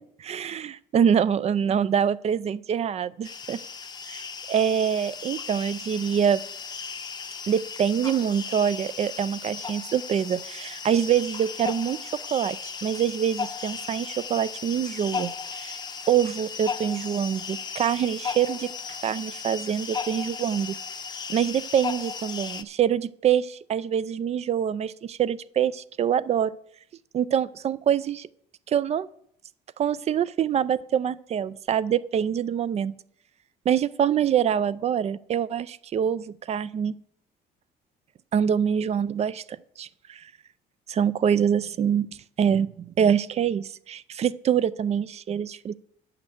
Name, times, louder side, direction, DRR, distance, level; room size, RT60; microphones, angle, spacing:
voice 1, 0.2-3.6 4.1-6.4 7.5-15.8 16.1-18.7 19.0-20.7 21.3-26.5 27.1-28.3 28.7-29.1 29.8-32.9 33.7-37.0 38.3-40.3 40.9-42.1 42.4-45.8, right 8 dB, 40° right, 18 dB, 0.4 m, -25 dB
sound 1, 3.2-22.6, left 6 dB, 25° left, 0.7 m, -36 dB
9.1 x 5.8 x 7.9 m, 0.71 s
cardioid pair, 110°, 17 cm